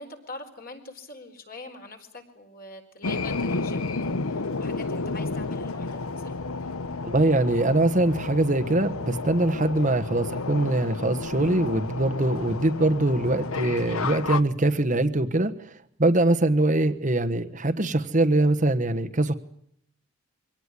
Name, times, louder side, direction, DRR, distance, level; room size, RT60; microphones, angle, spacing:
voice 1, 0.0-6.4, left 3 dB, 45° left, 4 dB, 4.3 m, -43 dB
sound 1, 3.0-14.4, left 3 dB, 90° left, 1.0 m, -31 dB
voice 2, 7.0-15.7 16.0-19.3, right 2 dB, 35° right, 8 dB, 1.3 m, -23 dB
24.0 x 18.0 x 9.7 m, 0.71 s
head